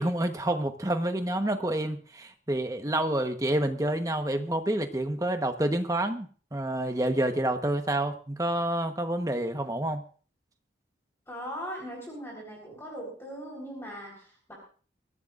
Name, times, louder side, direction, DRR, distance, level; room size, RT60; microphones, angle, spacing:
voice 1, 0.0-10.0, right 1 dB, 20° right, 6 dB, 1.2 m, -28 dB
voice 2, 11.3-14.6, equal, 15° left, -2 dB, 4.1 m, -39 dB
23.5 x 15.0 x 2.6 m, 0.41 s
head